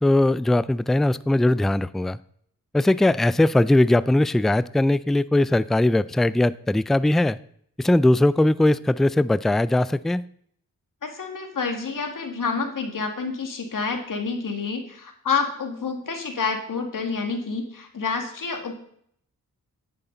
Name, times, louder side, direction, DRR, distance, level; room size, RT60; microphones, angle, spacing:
voice 1, 0.0-2.2 2.7-7.4 7.8-10.2, left 1 dB, ahead, 17 dB, 0.3 m, -20 dB
voice 2, 11.0-18.7, left 5 dB, 65° left, 4 dB, 2.2 m, -28 dB
10.0 x 8.4 x 4.0 m, 0.65 s
cardioid pair, 60°, 35 cm